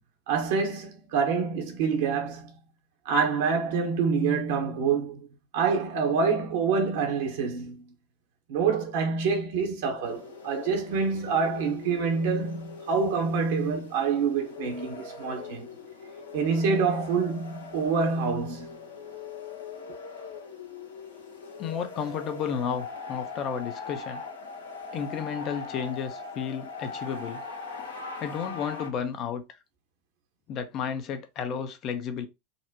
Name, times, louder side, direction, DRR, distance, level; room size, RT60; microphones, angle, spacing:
voice 1, 0.3-2.5 3.0-5.2 5.5-7.9 8.5-15.7 16.3-18.8, right 5 dB, 70° right, 1.1 m, -26 dB
sound 1, 10.0-28.9, left 4 dB, 85° left, 1.0 m, -41 dB
voice 2, 21.6-24.2 24.9-27.4 28.2-29.4 30.5-32.3, left 7 dB, 45° left, 0.7 m, -32 dB
4.0 x 2.1 x 2.9 m
hypercardioid pair, 90°, 0 cm